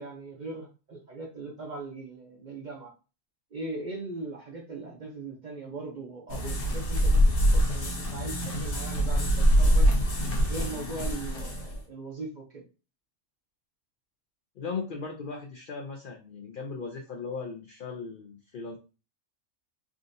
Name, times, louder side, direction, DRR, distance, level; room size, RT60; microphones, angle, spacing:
voice 1, 0.0-2.9 3.5-9.9 10.5-12.6, right 3 dB, 50° right, 0 dB, 0.6 m, -39 dB
sound 1, 6.3-11.8, equal, 50° left, 0.8 m, -24 dB
voice 2, 14.6-18.8, left 4 dB, 70° left, 1 dB, 0.5 m, -37 dB
3.6 x 2.6 x 2.6 m, 0.33 s
omnidirectional pair, 1.4 m